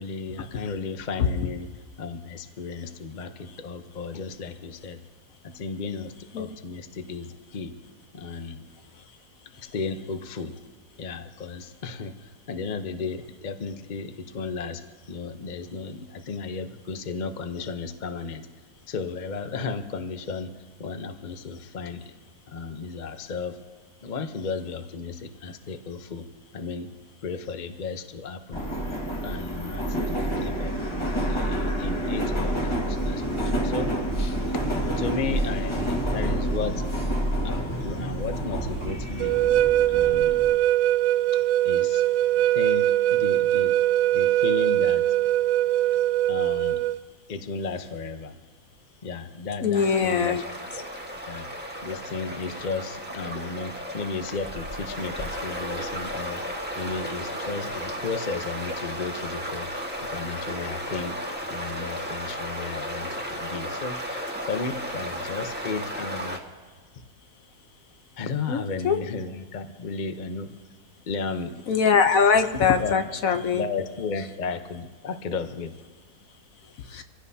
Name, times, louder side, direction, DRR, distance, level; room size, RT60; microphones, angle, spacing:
voice 1, 0.0-1.7 2.0-5.0 5.4-7.7 8.1-8.7 9.5-10.5 11.0-14.8 15.1-18.5 18.9-20.5 20.8-22.1 22.5-23.6 24.0-26.2 26.5-26.9 27.2-28.6 29.2-30.7 31.2-34.6 35.0-36.8 37.4-39.4 39.9-40.3 41.3-42.0 42.4-43.8 44.1-45.0 45.9-46.0 46.3-46.8 47.3-48.4 49.0-50.5 51.3-51.5 51.8-56.4 56.8-59.7 60.0-61.2 61.5-66.4 68.2-70.5 71.1-71.5 72.8-73.0 73.3-75.7, left 4 dB, 35° left, 7 dB, 0.8 m, -34 dB
Subway metro underground, 28.5-40.5, right 1 dB, 20° left, 1.7 m, -28 dB
sound 1, 39.2-47.0, right 13 dB, 75° right, 1.1 m, -22 dB
voice 2, 49.6-50.4 68.5-69.0 71.7-73.6 76.9-77.0, left 6 dB, 60° left, 7 dB, 1.2 m, -22 dB
sound 2, 49.7-66.4, equal, 5° right, 1.5 m, -34 dB
25.5 x 16.5 x 2.8 m, 1.4 s
omnidirectional pair, 1.7 m